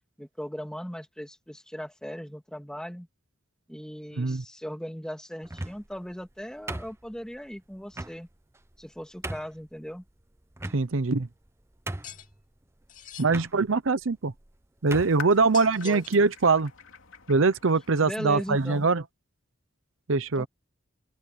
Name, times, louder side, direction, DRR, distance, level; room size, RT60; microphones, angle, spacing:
voice 1, 0.2-3.1 3.7-8.3 8.8-10.0 15.8-16.0 18.0-18.9 20.4-20.5, equal, 5° left, 2.9 m, -38 dB
sound 1, 5.4-6.0 6.7-7.4 7.9-8.2 8.8-8.9 9.2-9.6 10.6-11.1 11.5-11.6 11.9-12.3 13.3-13.5 14.4-14.5 14.9-15.2, right 2 dB, 15° right, 0.7 m, -36 dB
voice 2, 10.7-11.3 13.2-14.3 14.8-16.7 17.3-19.0 20.1-20.5, right 4 dB, 75° right, 0.8 m, -23 dB
sound 2, 12.0-12.3 12.9-13.3 15.3-16.2, left 10 dB, 40° left, 2.4 m, -44 dB
sound 3, 14.9-18.9, left 7 dB, 90° left, 2.9 m, -46 dB
open air
head